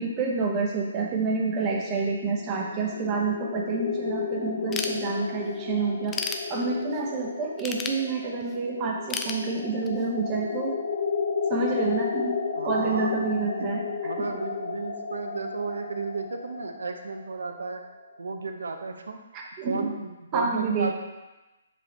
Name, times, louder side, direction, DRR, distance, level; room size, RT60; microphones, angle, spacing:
voice 1, 0.0-10.8 11.5-13.8 14.2-14.3 19.3-19.9 20.3-20.9, right 4 dB, 25° right, -1 dB, 0.9 m, -28 dB
sound 1, 1.6-18.5, left 5 dB, 65° left, 0.8 m, -33 dB
Ratchet pawl / Tools, 4.7-5.5 5.9-7.0 7.6-8.6 9.1-10.1, left 5 dB, 15° left, 0.4 m, -33 dB
voice 2, 12.5-13.1 13.6-17.8 18.2-19.2 19.6-20.9, right 4 dB, 90° right, 5 dB, 0.7 m, -33 dB
5.4 x 5.2 x 3.3 m, 1.1 s
hypercardioid pair, 160°, 0 cm